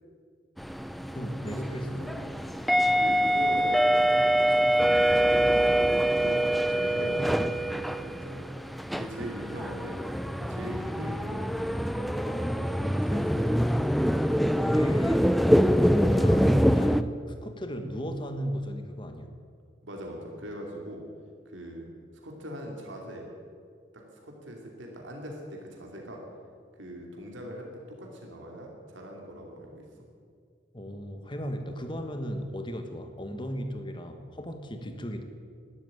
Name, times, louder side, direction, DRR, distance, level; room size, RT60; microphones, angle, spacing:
sound 1, 0.6-17.0, equal, ahead, 0.4 m, -25 dB
voice 1, 1.1-2.3 6.7-7.7 14.6-15.6 15.9-19.3 30.7-35.2, equal, 25° left, 7 dB, 1.3 m, -36 dB
voice 2, 1.7-2.3 2.9-3.9 4.2-8.5 8.9-10.0 10.4-13.7 19.8-21.0 21.5-21.9 22.2-23.3 24.2-26.2 26.8-29.8, right 1 dB, 75° right, 0 dB, 2.8 m, -41 dB
12.5 x 11.5 x 9.1 m, 2.2 s
head